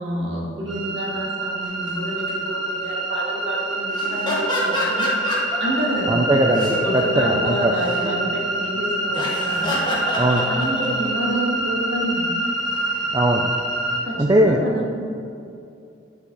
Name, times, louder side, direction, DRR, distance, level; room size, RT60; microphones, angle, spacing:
voice 1, 0.0-5.1 5.6-6.2 6.7-9.8 10.4-12.3 13.9-14.9, right 1 dB, 70° right, -4 dB, 2.1 m, -28 dB
sound 1, 0.7-14.0, right 2 dB, ahead, 1.5 m, -26 dB
sound 2, 1.6-1.9 2.3-2.5 2.8-3.4 3.7-5.8 6.3-7.0 7.4-8.1 9.1-11.1 12.4-13.1, left 2 dB, 25° left, 1.3 m, -28 dB
voice 2, 6.1-7.7 10.1-10.4 13.1-13.5 14.2-14.6, right 1 dB, 20° right, 2 dB, 0.4 m, -19 dB
9.9 x 5.8 x 4.0 m, 2.6 s
head